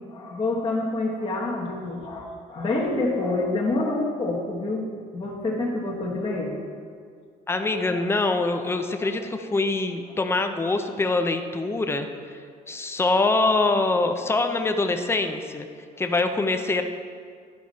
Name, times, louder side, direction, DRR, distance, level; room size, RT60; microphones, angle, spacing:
voice 1, 0.1-4.9 5.1-6.6 7.5-7.8 8.5-9.1, left 2 dB, 30° left, -4 dB, 1.3 m, -27 dB
voice 2, 7.5-12.1 12.7-15.7 16.0-16.8, left 3 dB, 15° left, 6 dB, 0.6 m, -24 dB
11.5 x 4.9 x 4.1 m, 2.1 s
cardioid pair, 110°, 17 cm